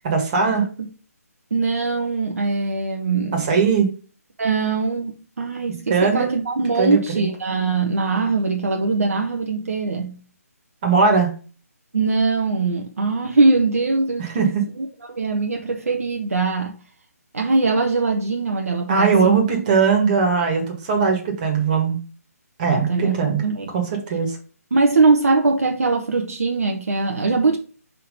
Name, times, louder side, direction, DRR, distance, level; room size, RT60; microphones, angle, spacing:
voice 1, 0.0-0.7 3.3-3.9 5.9-6.4 6.8-7.2 10.8-11.3 14.2-14.6 18.9-22.0 22.6-23.4 23.7-24.3, right 5 dB, 30° right, 1.7 m, -19 dB
voice 2, 1.5-3.5 4.4-10.1 11.9-16.7 17.3-19.3 22.7-23.7 24.7-27.6, right 3 dB, 65° right, 1.1 m, -21 dB
5.5 x 3.8 x 5.1 m
figure-of-eight pair, 145°, 9 cm